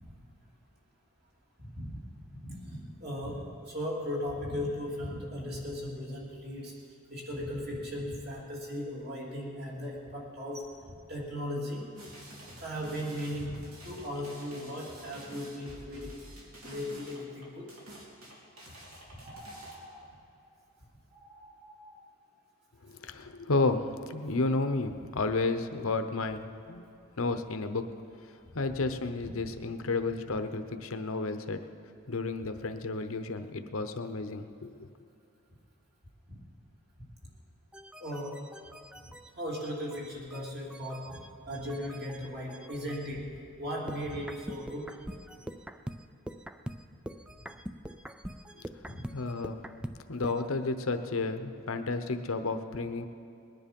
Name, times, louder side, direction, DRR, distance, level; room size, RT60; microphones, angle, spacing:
voice 1, 1.6-2.0 2.4-6.7 7.1-11.9 12.6-16.2 16.6-17.7 36.3-36.4 38.0-38.5 39.4-44.9 48.9-49.1, equal, 45° right, -4 dB, 3.0 m, -37 dB
sound 1, 12.0-19.7, equal, 80° right, 3.2 m, -49 dB
sound 2, 19.2-20.1 20.4-20.6 21.1-22.0, equal, 20° right, 2.4 m, -50 dB
voice 2, 22.8-26.8 27.2-27.8 28.5-31.6 32.1-34.9 49.1-49.6 50.1-53.1, left 3 dB, 70° left, 8 dB, 0.8 m, -32 dB
sound 3, 37.7-43.1 43.9-50.5, right 1 dB, 5° right, 0.3 m, -44 dB
20.5 x 10.0 x 5.3 m, 2.8 s
head